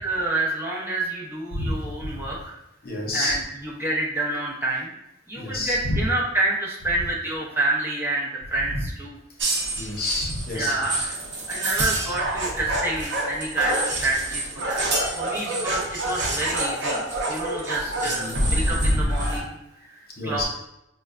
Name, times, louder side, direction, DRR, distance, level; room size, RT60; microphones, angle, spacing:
voice 1, 0.0-2.5 3.1-4.9 5.3-9.2 10.5-11.2 11.5-20.4, right 2 dB, 10° right, -5 dB, 0.6 m, -28 dB
voice 2, 1.5-2.1 2.8-3.4 5.4-6.0 9.7-10.7 16.2-16.3 18.0-18.5 18.8-19.0 20.2-20.4, left 2 dB, 55° left, -1 dB, 0.7 m, -29 dB
sound 1, 9.4-19.4, right 1 dB, 70° right, 0.7 m, -27 dB
5.2 x 2.2 x 2.4 m, 0.86 s
head